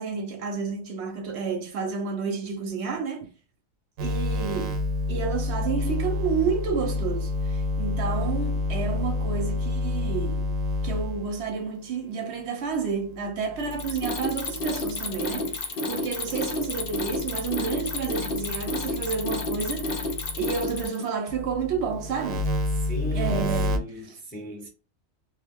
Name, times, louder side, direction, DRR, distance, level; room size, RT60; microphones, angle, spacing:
voice 1, 0.0-3.3 4.0-10.5 10.8-22.5 23.1-24.2, right 5 dB, 65° right, 0.8 m, -30 dB
sound 1, 4.0-11.5 13.4-15.6 16.1-20.9 21.3-23.8, left 2 dB, 90° right, 1.0 m, -30 dB
Mechanisms, 13.6-21.1, left 2 dB, 55° left, 0.7 m, -30 dB
voice 2, 15.9-16.4 22.8-24.7, left 1 dB, 15° left, 0.3 m, -37 dB
2.4 x 2.1 x 3.4 m
omnidirectional pair, 1.4 m